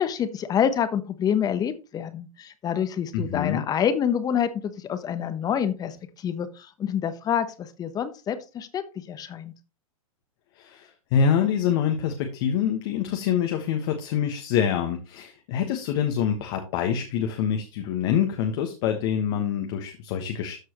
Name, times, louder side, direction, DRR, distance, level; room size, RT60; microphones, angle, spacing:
voice 1, 0.0-6.0 6.2-9.5, left 8 dB, 20° left, 12 dB, 0.9 m, -27 dB
voice 2, 3.1-3.6 10.5-20.6, left 8 dB, 45° left, 4 dB, 1.4 m, -26 dB
13.5 x 4.5 x 3.0 m, 0.30 s
hypercardioid pair, 125°, 18 cm